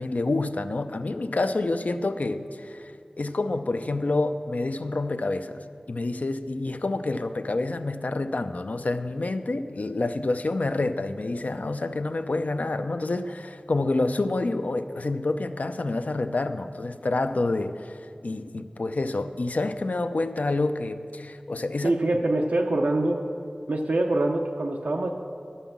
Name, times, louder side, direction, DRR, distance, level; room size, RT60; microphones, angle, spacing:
voice 1, 0.0-22.0, left 2 dB, 65° left, 9 dB, 0.4 m, -28 dB
voice 2, 21.8-23.2 23.7-25.1, right 2 dB, 90° right, 0 dB, 0.6 m, -24 dB
11.0 x 5.5 x 7.1 m, 2.3 s
wide cardioid pair, 50°, 3 cm